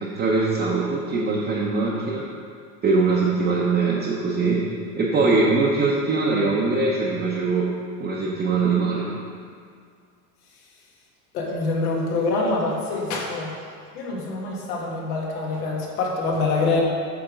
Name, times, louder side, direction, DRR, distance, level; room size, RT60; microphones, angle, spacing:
voice 1, 0.0-2.2 2.8-4.7 5.0-7.7 8.0-9.1, right 3 dB, 20° right, -5 dB, 0.7 m, -22 dB
voice 2, 11.3-13.5 13.9-16.8, left 3 dB, 80° left, -2 dB, 1.7 m, -25 dB
8.7 x 3.6 x 5.1 m, 2.1 s
supercardioid pair, 130°, 44 cm